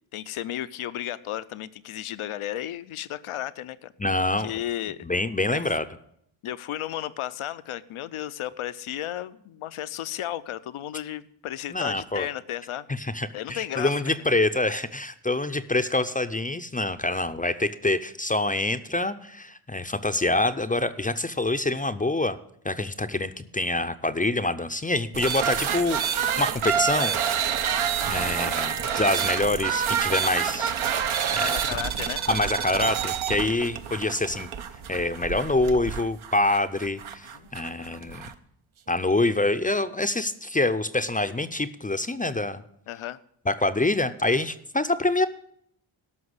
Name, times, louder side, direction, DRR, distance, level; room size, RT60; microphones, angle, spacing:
voice 1, 0.1-3.9 4.4-5.0 5.5-5.8 6.4-12.9 13.3-14.1 31.4-32.2 37.3-37.5 42.9-43.2, left 12 dB, 80° left, 14 dB, 0.7 m, -34 dB
voice 2, 4.0-4.5 5.0-5.8 11.7-12.3 13.0-22.4 22.6-27.2 28.0-30.7 31.3-31.8 32.3-34.5 34.9-38.3 38.9-42.6 43.5-45.3, left 2 dB, 15° left, 11 dB, 0.5 m, -26 dB
sound 1, 25.1-38.3, right 8 dB, 75° right, 0.9 m, -28 dB
13.0 x 5.8 x 7.9 m, 0.71 s
cardioid pair, 75°, 49 cm